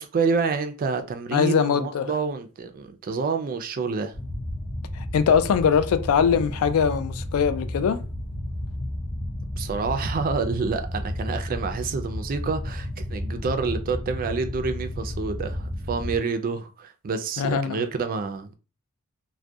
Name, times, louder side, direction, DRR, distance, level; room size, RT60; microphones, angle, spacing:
voice 1, 0.0-4.1 9.6-18.6, right 4 dB, 40° right, 0.3 m, -28 dB
voice 2, 1.3-2.1 5.0-8.0 17.4-17.8, left 7 dB, 75° left, 0.3 m, -22 dB
sound 1, 4.1-16.2, left 1 dB, 30° left, 0.5 m, -32 dB
2.3 x 2.1 x 2.6 m
head